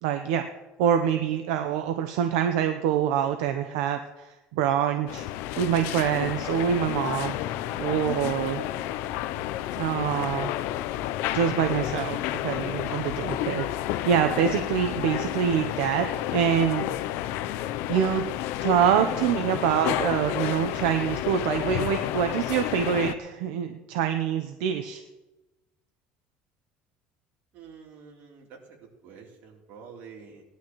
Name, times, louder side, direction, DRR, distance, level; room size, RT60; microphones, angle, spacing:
voice 1, 0.0-0.4 0.8-5.3 5.6-7.3 7.8-8.6 9.8-10.5 11.3-12.2 12.4-13.7 14.0-16.8 17.9-18.2 18.6-25.0, right 8 dB, 85° right, 7 dB, 0.8 m, -25 dB
sound 1, 5.1-23.1, left 13 dB, 75° left, 0.6 m, -31 dB
voice 2, 27.5-28.8 29.0-30.4, right 6 dB, 65° right, -1 dB, 3.5 m, -47 dB
19.5 x 11.5 x 3.1 m, 1.1 s
supercardioid pair, 110°, 4 cm